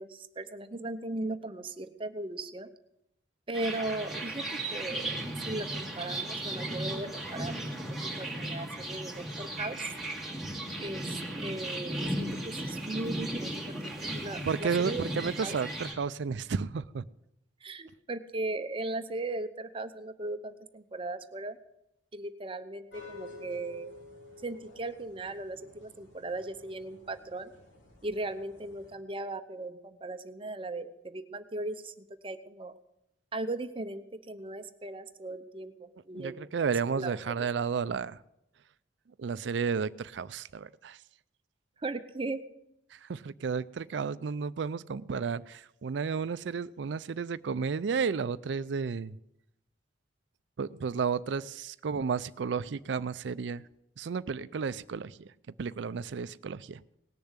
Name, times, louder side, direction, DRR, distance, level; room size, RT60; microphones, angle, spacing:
voice 1, 0.0-2.7 3.5-7.5 8.0-9.9 10.8-13.6 13.8-15.1 15.4-15.6 17.6-21.6 22.1-23.9 24.4-27.5 28.0-32.7 33.3-37.5 41.8-42.4, right 2 dB, 30° right, 10 dB, 0.8 m, -38 dB
sound 1, 3.5-15.9, right 1 dB, ahead, 2.5 m, -36 dB
voice 2, 14.4-17.1 36.1-38.2 39.2-41.0 42.9-49.2 50.6-53.6 54.0-55.3 55.6-56.8, right 5 dB, 75° right, 16 dB, 0.4 m, -32 dB
sound 2, 22.9-29.0, left 3 dB, 85° left, 4.0 m, -51 dB
18.5 x 6.9 x 8.1 m, 0.82 s
head